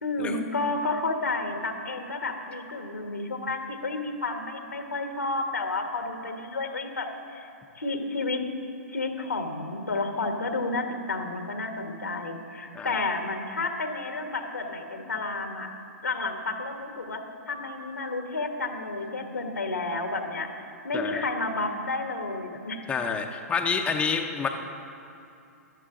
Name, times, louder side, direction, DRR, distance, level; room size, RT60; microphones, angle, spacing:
voice 1, 0.0-7.5 7.7-8.4 8.9-15.7 16.0-17.2 17.5-22.8, left 3 dB, 90° left, 4 dB, 1.5 m, -31 dB
voice 2, 20.9-21.2 22.9-24.5, left 5 dB, 15° left, 3 dB, 0.7 m, -28 dB
14.0 x 11.5 x 3.8 m, 2.8 s
hypercardioid pair, 125°, 9 cm